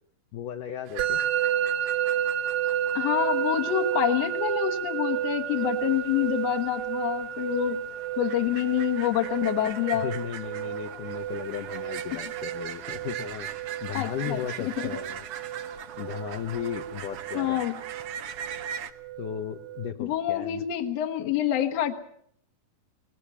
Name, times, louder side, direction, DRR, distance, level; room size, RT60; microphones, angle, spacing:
voice 1, 0.3-1.2 9.9-13.5 13.8-15.3 16.0-17.6 19.2-20.7, left 9 dB, 70° left, 4 dB, 2.3 m, -35 dB
sound 1, 0.9-18.9, right 9 dB, 85° right, 1.2 m, -41 dB
Musical instrument, 1.0-19.9, right 11 dB, 65° right, 2.5 m, -32 dB
voice 2, 2.9-7.8 8.2-10.1 13.9-14.4 14.8-14.9 17.3-17.8 20.0-22.0, left 12 dB, 55° left, 5 dB, 2.3 m, -27 dB
20.5 x 20.5 x 7.1 m, 0.65 s
omnidirectional pair, 4.2 m